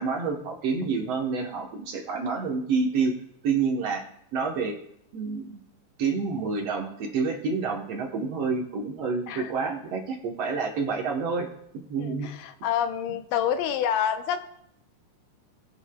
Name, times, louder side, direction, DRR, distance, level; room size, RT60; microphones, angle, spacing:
voice 1, 0.0-3.1 3.4-4.8 5.1-5.6 6.0-11.5 11.9-12.3, right 4 dB, 65° right, 1 dB, 1.8 m, -28 dB
voice 2, 12.0-14.4, left 9 dB, 90° left, 8 dB, 2.2 m, -27 dB
21.0 x 7.9 x 2.2 m, 0.74 s
omnidirectional pair, 3.7 m